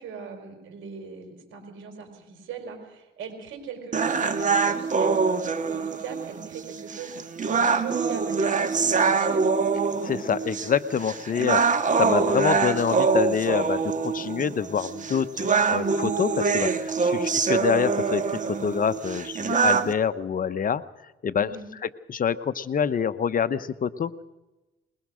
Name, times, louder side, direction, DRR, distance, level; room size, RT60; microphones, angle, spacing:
voice 1, 0.0-7.1 7.4-9.5 17.0-17.3 21.4-21.7, right 6 dB, 85° right, 5 dB, 4.9 m, -40 dB
sound 1, 3.9-19.9, right 5 dB, 40° right, 1.6 m, -25 dB
voice 2, 10.0-20.8 21.2-21.5 22.1-24.2, left 7 dB, 45° left, 13 dB, 0.9 m, -26 dB
21.5 x 20.5 x 6.4 m, 1.1 s
cardioid pair, 90°, 20 cm